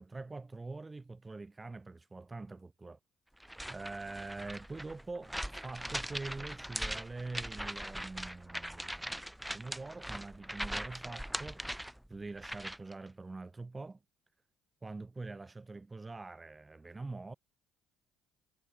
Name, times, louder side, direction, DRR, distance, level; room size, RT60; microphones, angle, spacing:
voice 1, 0.0-3.0 3.7-5.4 5.6-9.2 9.5-11.8 12.1-14.0 14.8-17.3, right 3 dB, 20° right, 6.0 m, -44 dB
sound 1, 3.4-12.9, equal, 5° right, 3.6 m, -41 dB
hypercardioid pair, 65°, 0 cm